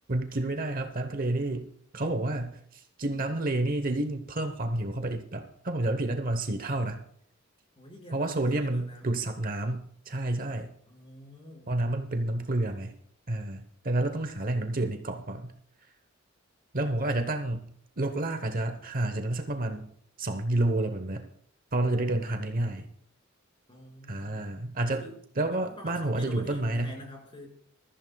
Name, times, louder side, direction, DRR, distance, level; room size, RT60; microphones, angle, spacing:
voice 1, 0.1-1.7 1.9-7.0 8.1-10.7 11.7-12.9 13.3-15.5 16.7-19.9 20.2-21.2 21.7-22.9 24.1-25.0 25.4-26.9, right 2 dB, 45° right, 7 dB, 1.0 m, -30 dB
voice 2, 7.8-9.2 10.9-11.7 23.7-24.5 25.0-27.6, equal, 25° left, -1 dB, 5.3 m, -47 dB
21.0 x 14.0 x 2.3 m, 0.67 s
head